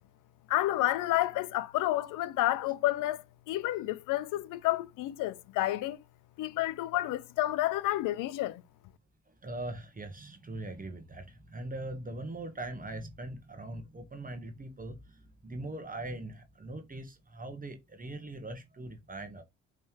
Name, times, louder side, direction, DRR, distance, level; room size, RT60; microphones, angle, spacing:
voice 1, 0.5-6.0 6.4-8.6, left 15 dB, 70° left, 0.6 m, -30 dB
voice 2, 9.4-19.4, right 2 dB, 25° right, 1.1 m, -41 dB
5.4 x 3.3 x 2.9 m
hypercardioid pair, 50°, 33 cm